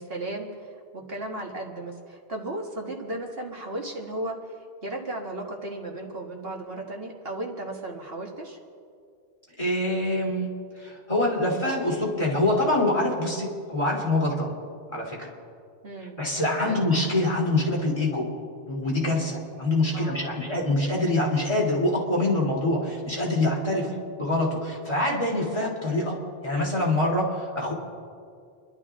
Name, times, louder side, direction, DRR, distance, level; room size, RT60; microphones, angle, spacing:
voice 1, 0.0-8.6 15.8-16.2 16.6-16.8 19.9-20.5 23.8-24.0, right 1 dB, 60° right, 0 dB, 2.0 m, -35 dB
voice 2, 9.6-14.5 14.9-15.3 16.2-18.3 18.7-23.9 24.2-26.1 26.4-27.7, left 1 dB, 30° left, -4 dB, 3.2 m, -25 dB
29.5 x 12.0 x 3.7 m, 2.4 s
omnidirectional pair, 1.1 m